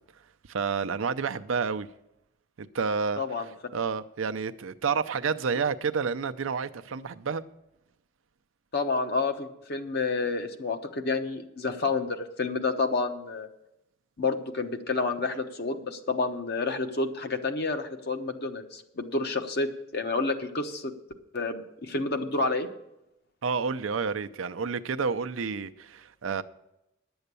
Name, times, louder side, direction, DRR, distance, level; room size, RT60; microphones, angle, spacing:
voice 1, 0.5-1.9 2.6-3.2 3.7-7.4 23.4-26.4, right 5 dB, 80° right, 0.6 m, -29 dB
voice 2, 3.2-3.5 8.7-13.5 14.2-20.9 21.3-22.7, left 3 dB, 55° left, 1.0 m, -29 dB
11.0 x 7.9 x 6.8 m
head